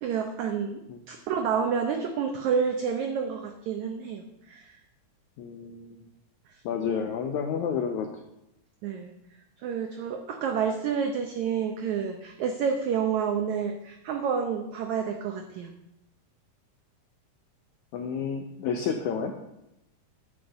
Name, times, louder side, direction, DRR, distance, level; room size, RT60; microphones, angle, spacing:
voice 1, 0.0-0.8 1.1-4.8 8.8-9.1 9.6-15.7, right 6 dB, 90° right, 5 dB, 1.6 m, -29 dB
voice 2, 5.4-6.0 6.6-8.1 17.9-19.3, left 6 dB, 85° left, 5 dB, 1.7 m, -30 dB
9.4 x 6.4 x 6.9 m, 0.86 s
omnidirectional pair, 4.3 m